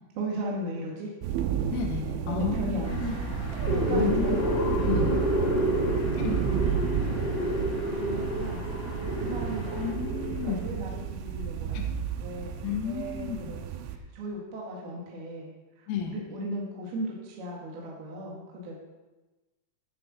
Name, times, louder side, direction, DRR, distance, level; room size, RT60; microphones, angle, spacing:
voice 1, 0.2-1.1 2.2-3.2 3.7-6.3 8.0-8.6 9.2-9.9 10.4-12.5 12.8-13.6 13.9-18.8, right 1 dB, 60° right, -3 dB, 3.0 m, -37 dB
sound 1, 1.2-14.0, right 8 dB, 85° right, 2.8 m, -31 dB
voice 2, 1.7-3.2 3.9-5.1 6.2-6.8 9.8-10.6 11.7-11.8 12.6-13.5 15.9-16.1, left 7 dB, 85° left, 2 dB, 4.2 m, -32 dB
sound 2, 2.8-9.9, right 1 dB, 5° right, 2.6 m, -39 dB
sound 3, 3.4-10.7, left 1 dB, 70° left, 1.8 m, -30 dB
11.5 x 6.8 x 6.1 m, 1.1 s
omnidirectional pair, 5.9 m